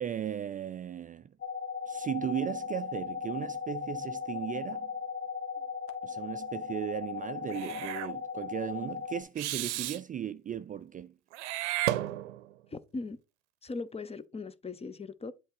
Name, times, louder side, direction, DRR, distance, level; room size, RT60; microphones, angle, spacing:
voice 1, 0.0-1.3 1.9-4.9 6.0-11.1, right 9 dB, 25° right, 0.4 m, -36 dB
sound 1, 1.4-9.2, left 6 dB, 40° left, 1.5 m, -37 dB
Meow / Hiss, 7.5-8.1 9.4-10.0 11.3-12.6, right 15 dB, 85° right, 0.6 m, -33 dB
voice 2, 12.7-13.2 13.6-15.3, left 3 dB, 20° left, 0.7 m, -39 dB
7.8 x 3.8 x 4.8 m
hypercardioid pair, 75°, 34 cm